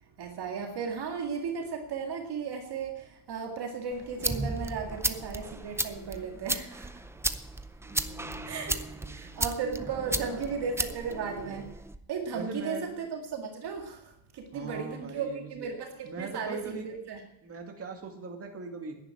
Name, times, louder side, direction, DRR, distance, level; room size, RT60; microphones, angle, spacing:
voice 1, 0.2-7.0 8.4-8.8 9.1-11.7 12.1-17.2, right 5 dB, 50° right, 3 dB, 2.0 m, -35 dB
sound 1, 3.9-12.0, right 2 dB, 5° right, 0.4 m, -34 dB
voice 2, 7.8-9.6 9.9-10.5 11.1-11.3 12.3-13.0 14.5-15.7 16.1-16.9 17.4-19.0, right 4 dB, 30° right, 2 dB, 2.3 m, -41 dB
10.5 x 10.5 x 9.6 m, 0.83 s
cardioid pair, 155°, 49 cm